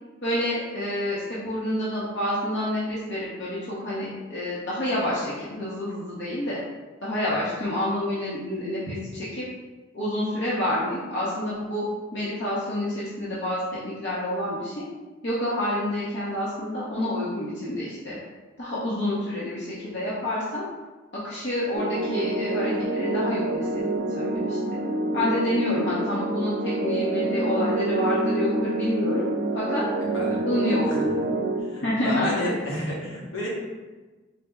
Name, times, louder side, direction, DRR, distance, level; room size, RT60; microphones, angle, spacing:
voice 1, 0.2-3.6 3.8-6.6 7.0-9.4 9.9-11.8 12.1-14.8 15.2-18.2 18.6-20.6 21.2-24.8 25.1-29.3 29.5-29.8 30.4-31.4 31.8-32.6, left 1 dB, 65° left, -9 dB, 0.8 m, -28 dB
sound 1, 21.7-31.6, right 2 dB, 75° right, 0.5 m, -27 dB
voice 2, 31.6-33.5, equal, 80° left, -5 dB, 1.1 m, -31 dB
4.3 x 2.1 x 3.5 m, 1.2 s
head